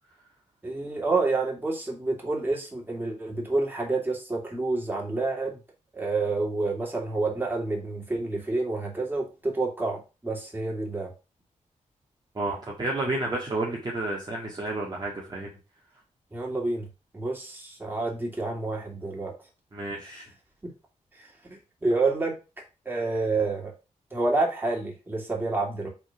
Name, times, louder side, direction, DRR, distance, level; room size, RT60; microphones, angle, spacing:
voice 1, 0.6-5.6 5.9-11.1 16.3-16.8 17.1-19.3 21.8-22.3 22.9-23.7 24.1-25.9, right 3 dB, 15° right, -1 dB, 2.9 m, -28 dB
voice 2, 12.4-15.5 19.7-20.3, right 2 dB, 30° right, -3 dB, 1.9 m, -31 dB
6.9 x 3.9 x 5.9 m, 0.30 s
wide cardioid pair, 120°, 13 cm